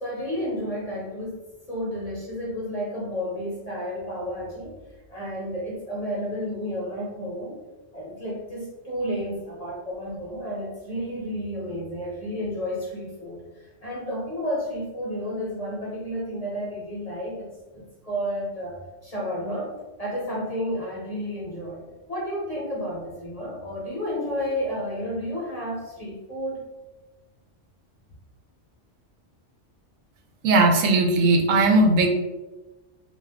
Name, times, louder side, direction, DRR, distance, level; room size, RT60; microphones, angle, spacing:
voice 1, 0.0-1.4 1.7-4.8 5.1-7.6 7.9-21.8 22.1-26.6, equal, 35° left, -5 dB, 0.7 m, -31 dB
voice 2, 30.4-32.1, right 2 dB, 85° right, 1 dB, 1.0 m, -18 dB
2.5 x 2.3 x 3.3 m, 1.1 s
omnidirectional pair, 1.3 m